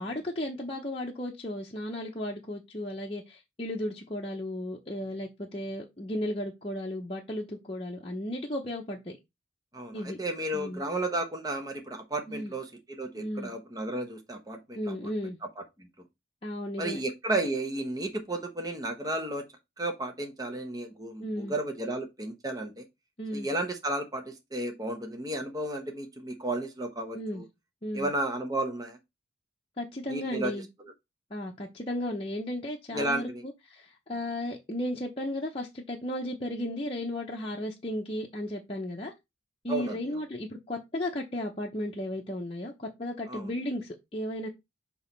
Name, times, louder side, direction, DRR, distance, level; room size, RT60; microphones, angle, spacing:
voice 1, 0.0-9.2 9.9-10.2 10.5-10.8 12.3-12.5 13.2-13.5 14.7-15.4 16.4-17.0 21.2-21.5 23.2-23.5 27.1-27.4 27.8-28.1 29.8-30.7 31.3-39.1 39.6-44.5, left 1 dB, 30° left, 0.8 m, -35 dB
voice 2, 9.7-15.0 15.6-15.9 16.8-19.4 19.8-22.8 23.3-27.4 27.9-29.0 30.1-30.5 32.9-33.4 39.7-40.0 43.3-43.5, right 2 dB, 20° right, 0.9 m, -33 dB
6.3 x 3.0 x 5.3 m
head